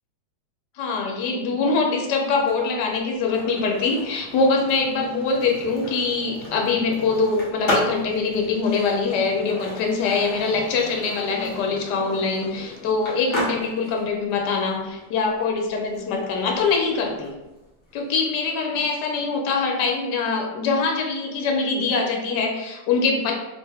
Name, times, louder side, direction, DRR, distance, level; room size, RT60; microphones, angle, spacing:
voice 1, 0.8-17.3 17.9-23.3, left 4 dB, 70° left, 1 dB, 1.2 m, -23 dB
Skateboard, 2.3-18.2, equal, 40° left, 0.7 m, -35 dB
3.3 x 2.1 x 3.3 m, 1.0 s
omnidirectional pair, 2.0 m